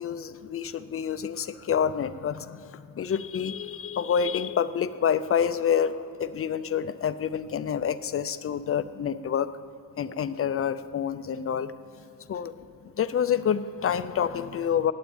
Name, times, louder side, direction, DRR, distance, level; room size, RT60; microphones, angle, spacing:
voice 1, 0.0-9.5 10.0-11.7 12.3-12.5 13.0-14.9, left 8 dB, 40° left, 13 dB, 0.5 m, -28 dB
15.0 x 9.4 x 8.8 m, 2.4 s
wide cardioid pair, 170°, 36 cm